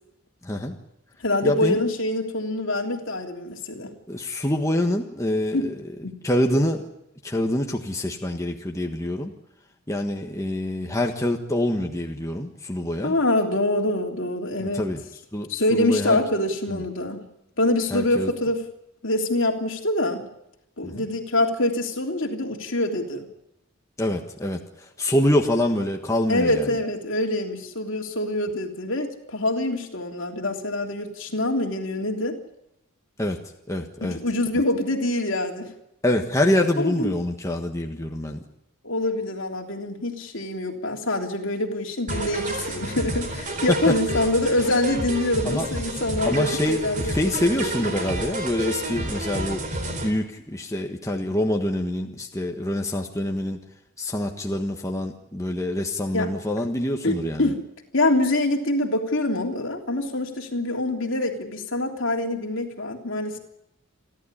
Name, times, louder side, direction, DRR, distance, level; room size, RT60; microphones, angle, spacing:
voice 1, 0.4-0.8 1.4-1.8 4.1-5.8 6.2-6.9 7.2-9.3 9.9-13.1 14.6-15.0 15.3-16.2 16.7-16.8 17.9-18.3 24.0-24.6 25.0-26.6 33.2-33.4 33.7-34.2 36.0-38.4 43.9-44.0 45.4-45.7 46.3-49.6 50.0-53.6 54.0-57.4, left 1 dB, 15° left, 2 dB, 1.5 m, -25 dB
voice 2, 1.2-3.9 5.5-5.7 6.0-6.2 13.0-14.9 15.5-17.3 17.6-18.6 19.0-20.2 20.8-23.3 26.3-32.4 34.0-35.7 36.8-37.1 38.8-47.9 56.1-56.3 57.0-57.6 57.9-63.4, left 1 dB, 60° left, 2 dB, 3.3 m, -25 dB
sound 1, 42.1-50.1, right 1 dB, 35° right, 4.2 m, -30 dB
29.5 x 12.0 x 9.9 m, 0.84 s
head